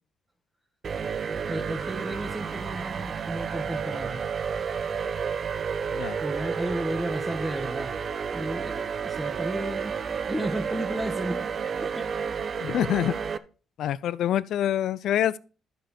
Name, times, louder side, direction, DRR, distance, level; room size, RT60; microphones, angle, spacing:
sound 1, 0.8-13.4, right 6 dB, 50° right, 0.6 m, -31 dB
voice 1, 1.5-4.2 6.2-7.9 8.3-9.9 10.3-11.4 11.7-12.3, right 1 dB, 10° right, 1.3 m, -33 dB
voice 2, 12.6-13.1 13.8-15.4, left 11 dB, 75° left, 0.4 m, -26 dB
12.0 x 5.2 x 4.3 m
cardioid pair, 90°, 0 cm